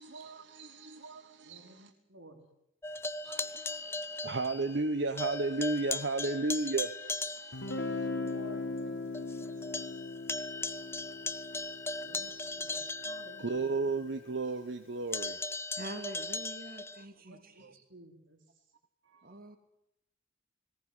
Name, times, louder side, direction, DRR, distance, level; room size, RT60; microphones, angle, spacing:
voice 1, 0.0-1.9 3.2-8.1 10.5-12.1 13.4-15.8 17.6-17.7 19.1-19.4, right 3 dB, 65° right, 1.1 m, -35 dB
voice 2, 1.4-2.5 7.6-9.0 9.4-9.9 12.0-13.6 17.3-18.6, right 1 dB, 85° right, 4.5 m, -54 dB
sound 1, 2.8-4.9 5.2-7.8 8.3-8.4 8.8-8.9 9.1-13.9 15.1-17.0, left 3 dB, 15° left, 0.8 m, -38 dB
Guitar, 7.5-13.3, left 3 dB, 80° left, 1.9 m, -39 dB
voice 3, 15.8-17.7 19.2-19.6, right 1 dB, 50° right, 2.8 m, -45 dB
19.0 x 18.0 x 9.7 m
head